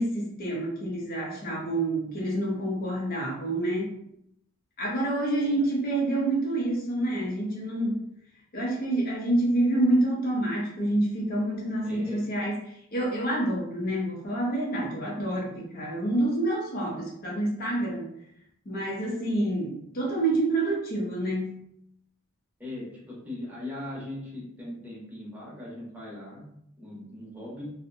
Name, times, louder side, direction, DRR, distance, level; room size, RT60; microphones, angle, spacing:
voice 1, 0.0-3.9 4.8-8.0 8.5-18.1 18.7-21.6, right 1 dB, 45° left, -3 dB, 0.6 m, -27 dB
voice 2, 11.8-12.2 22.6-26.5 26.8-27.7, left 1 dB, 10° right, -5 dB, 0.7 m, -39 dB
2.6 x 2.1 x 2.5 m, 0.74 s
head